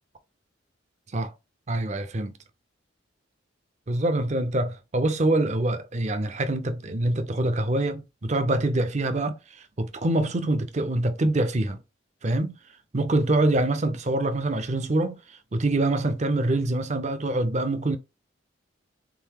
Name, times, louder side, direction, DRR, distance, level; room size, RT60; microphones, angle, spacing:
voice 1, 1.7-2.3 3.9-11.8 12.2-12.6 12.9-18.0, right 2 dB, 35° right, 0.5 m, -25 dB
3.9 x 3.5 x 2.9 m
head